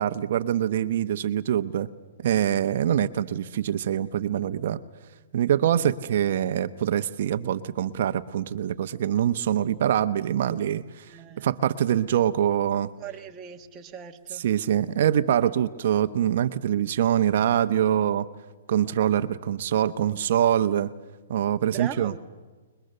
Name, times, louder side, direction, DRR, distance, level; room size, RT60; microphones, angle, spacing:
voice 1, 0.0-1.9 2.2-4.8 5.3-11.1 11.4-12.9 14.3-18.3 18.7-20.9 21.3-22.1, right 10 dB, 55° right, 0.9 m, -24 dB
voice 2, 11.1-11.5 13.0-14.4 21.7-22.2, right 10 dB, 20° right, 1.5 m, -39 dB
28.5 x 22.0 x 6.7 m
hypercardioid pair, 155°, 0 cm